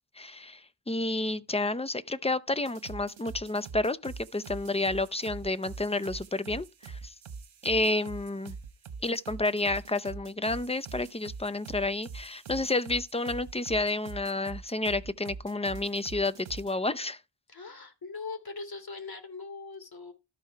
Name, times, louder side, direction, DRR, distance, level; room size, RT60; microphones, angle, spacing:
voice 1, 0.2-7.1 7.6-8.5 9.0-17.2, left 2 dB, 15° left, 0.7 m, -30 dB
sound 1, 2.7-16.7, right 5 dB, 85° right, 1.3 m, -44 dB
voice 2, 17.5-20.1, left 4 dB, 50° left, 3.1 m, -41 dB
13.0 x 5.7 x 4.6 m
wide cardioid pair, 90°, 47 cm